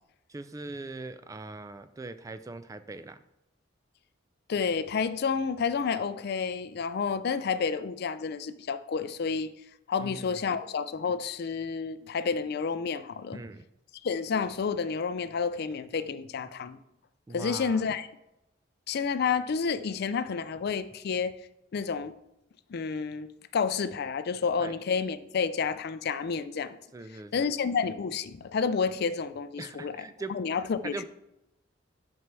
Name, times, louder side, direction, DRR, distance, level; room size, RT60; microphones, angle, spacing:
voice 1, 0.3-3.2 10.0-10.4 13.3-13.6 17.3-17.8 24.6-24.8 26.9-27.5 29.6-30.4 30.8-31.0, right 3 dB, 20° right, 12 dB, 0.3 m, -41 dB
voice 2, 4.5-9.5 9.9-13.4 14.0-16.8 17.3-18.1 18.9-21.4 21.7-22.1 22.7-26.8 27.3-30.0 30.3-31.0, left 5 dB, 55° left, 13 dB, 0.4 m, -30 dB
6.2 x 4.5 x 6.0 m, 0.89 s
head